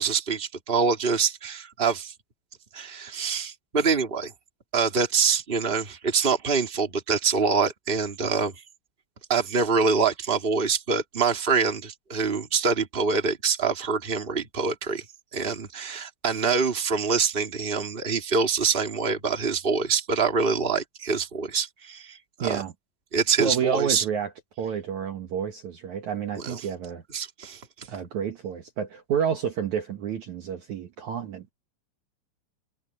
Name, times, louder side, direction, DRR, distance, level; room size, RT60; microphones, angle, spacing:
voice 1, 0.0-2.1 2.7-4.3 4.7-8.5 9.3-15.0 15.3-22.6 23.1-24.0 26.4-26.6 27.1-27.9, right 5 dB, 15° right, 2.4 m, -25 dB
voice 2, 22.4-22.7 23.4-24.3 24.6-27.0 27.9-31.5, right 7 dB, 60° right, 2.5 m, -29 dB
omnidirectional pair, 4.4 m